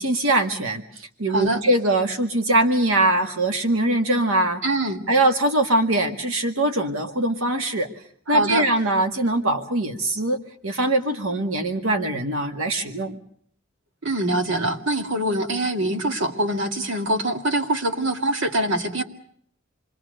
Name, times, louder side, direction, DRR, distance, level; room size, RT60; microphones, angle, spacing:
voice 1, 0.0-4.6 5.1-7.9 8.3-10.4 10.6-13.2, right 1 dB, 90° right, 5 dB, 1.9 m, -22 dB
voice 2, 1.3-1.6 4.6-5.1 8.3-8.7 14.0-19.0, right 1 dB, 65° right, 5 dB, 2.2 m, -24 dB
27.5 x 22.0 x 6.6 m, 0.63 s
head